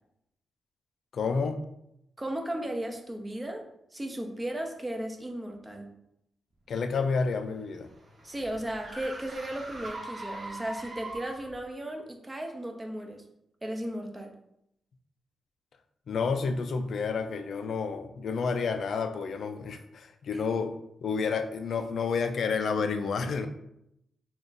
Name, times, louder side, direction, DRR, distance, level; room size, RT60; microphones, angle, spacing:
voice 1, 1.1-1.6 6.7-7.9 16.1-20.8 21.0-23.5, left 5 dB, 70° left, 7 dB, 0.4 m, -30 dB
voice 2, 2.2-3.7 3.9-5.9 8.2-13.2 13.6-14.3 20.3-20.4, right 1 dB, 20° right, 3 dB, 0.6 m, -35 dB
sound 1, 7.3-11.6, right 2 dB, 50° right, 0.9 m, -42 dB
3.3 x 2.4 x 3.9 m, 0.79 s
cardioid pair, 100°, 0 cm